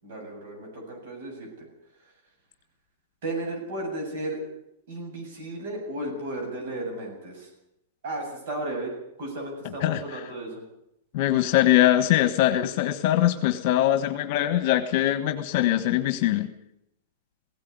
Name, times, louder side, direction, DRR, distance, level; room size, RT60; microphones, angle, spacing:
voice 1, 0.0-1.7 3.2-4.4 4.9-7.5 8.0-10.6, right 1 dB, 60° right, 1 dB, 7.8 m, -34 dB
voice 2, 11.1-16.5, left 13 dB, 45° left, 10 dB, 1.4 m, -22 dB
17.0 x 16.5 x 9.5 m, 0.80 s
supercardioid pair, 150°, 0 cm